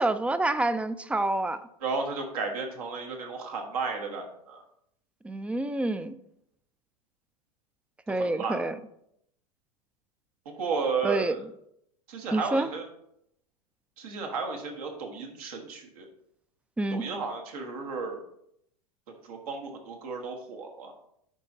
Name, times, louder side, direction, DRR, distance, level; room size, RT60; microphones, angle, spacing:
voice 1, 0.0-1.6 5.2-6.2 8.1-8.8 11.0-11.3 12.3-12.7 16.8-17.0, right 2 dB, 5° right, 13 dB, 0.3 m, -27 dB
voice 2, 1.8-4.6 8.1-8.6 10.4-11.4 12.1-12.8 14.0-16.1 16.9-18.2 19.2-20.9, right 4 dB, 70° right, 3 dB, 1.4 m, -33 dB
10.5 x 4.3 x 2.7 m, 0.74 s
hypercardioid pair, 90°, 20 cm